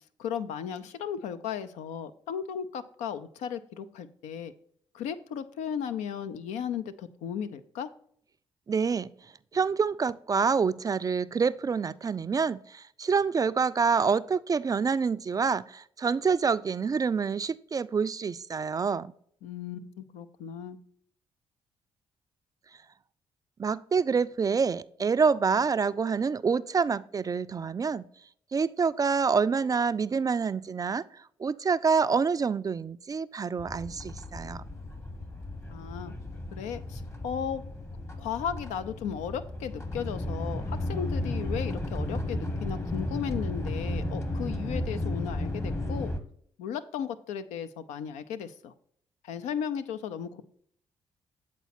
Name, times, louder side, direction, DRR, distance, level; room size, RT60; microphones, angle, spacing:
voice 1, 0.2-4.5 4.9-7.9 19.4-20.8 35.7-36.1 36.5-37.6 38.2-46.1 46.6-48.7 49.2-50.4, left 8 dB, 80° left, 0.5 m, -35 dB
voice 2, 8.7-9.1 9.5-19.1 23.6-28.1 28.5-34.6, right 5 dB, 30° right, 0.3 m, -27 dB
sound 1, 33.6-46.2, left 1 dB, 20° left, 1.1 m, -34 dB
8.1 x 4.2 x 4.2 m
hypercardioid pair, 50°, 12 cm